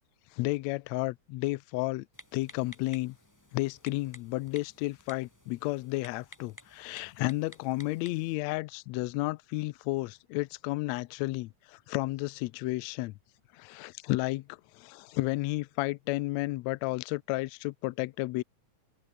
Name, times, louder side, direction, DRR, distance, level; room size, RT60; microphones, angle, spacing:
voice 1, 0.3-2.1 2.3-3.2 3.5-13.1 13.5-18.4, left 20 dB, 85° left, 1.5 m, -32 dB
Typing, 2.1-8.3, left 1 dB, 5° left, 2.5 m, -54 dB
open air
omnidirectional pair, 3.8 m